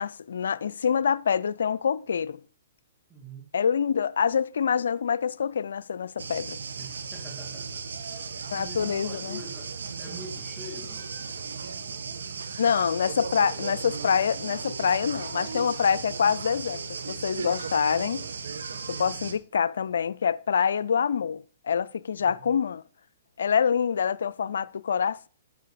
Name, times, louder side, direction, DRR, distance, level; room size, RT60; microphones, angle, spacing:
voice 1, 0.0-2.4 3.5-6.6 8.5-9.4 12.6-18.3 18.9-22.8 23.4-25.3, left 7 dB, 70° left, 0.5 m, -26 dB
voice 2, 3.1-3.5 6.8-11.2 22.2-22.5, equal, ahead, 2.1 m, -45 dB
sound 1, 6.2-19.3, right 5 dB, 75° right, 1.5 m, -36 dB
10.0 x 6.9 x 4.9 m
hypercardioid pair, 125°, 0 cm